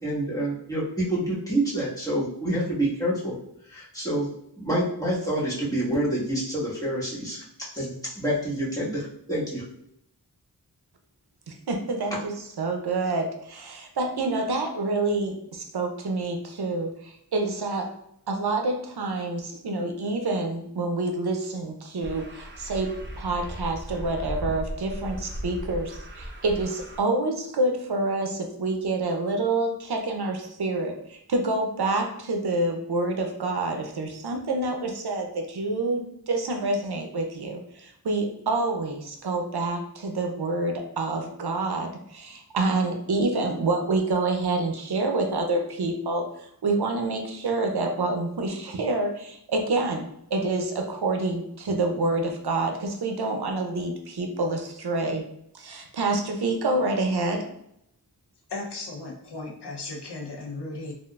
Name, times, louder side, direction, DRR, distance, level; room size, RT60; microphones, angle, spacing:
voice 1, 0.0-3.3 3.7-4.3 4.6-7.4 7.7-9.6, right 1 dB, 10° left, -7 dB, 1.4 m, -27 dB
voice 2, 11.5-17.9 18.3-22.9 23.2-55.2 55.5-57.4, right 2 dB, 75° right, 3 dB, 0.6 m, -27 dB
sound 1, 22.0-27.0, equal, 30° right, 0.7 m, -36 dB
voice 3, 58.5-60.9, left 2 dB, 85° left, -1 dB, 0.7 m, -36 dB
3.6 x 2.4 x 2.3 m, 0.74 s
wide cardioid pair, 40°, 39 cm